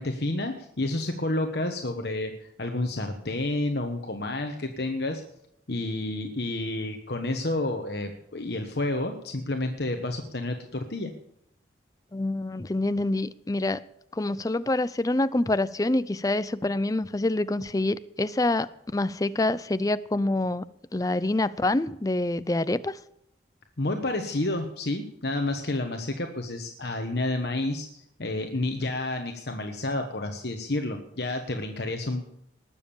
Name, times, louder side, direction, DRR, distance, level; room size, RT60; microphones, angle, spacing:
voice 1, 0.0-5.2 5.7-11.1 23.8-32.3, left 2 dB, 60° left, 4 dB, 1.2 m, -30 dB
voice 2, 12.1-13.8 14.1-20.6 20.9-23.0, left 2 dB, 20° left, 15 dB, 0.4 m, -26 dB
19.5 x 7.3 x 7.0 m, 0.77 s
head